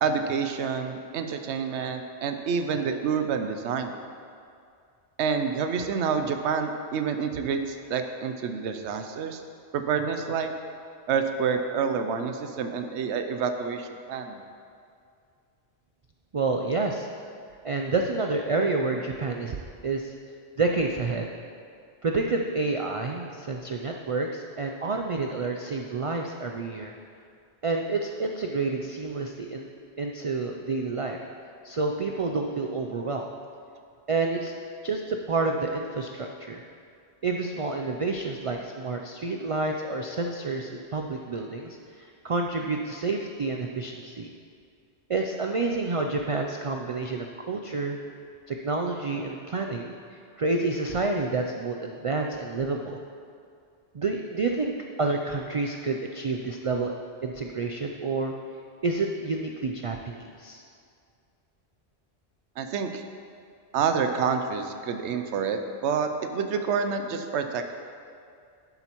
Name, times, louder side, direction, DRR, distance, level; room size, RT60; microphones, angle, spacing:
voice 1, 0.0-3.9 5.2-9.4 9.7-10.5 11.1-14.4 62.6-63.0 63.7-67.7, right 6 dB, 90° right, 7 dB, 0.9 m, -28 dB
voice 2, 16.3-17.1 17.6-19.6 19.8-20.1 20.6-21.3 22.0-26.9 27.6-29.7 30.0-31.2 31.6-33.3 34.1-34.5 34.8-36.6 37.2-44.3 45.1-48.0 48.5-53.0 53.9-54.7 55.0-57.0 57.2-58.3 58.8-60.6, right 3 dB, 60° right, 2 dB, 0.3 m, -29 dB
11.0 x 7.8 x 3.0 m, 2.3 s
omnidirectional pair, 1.1 m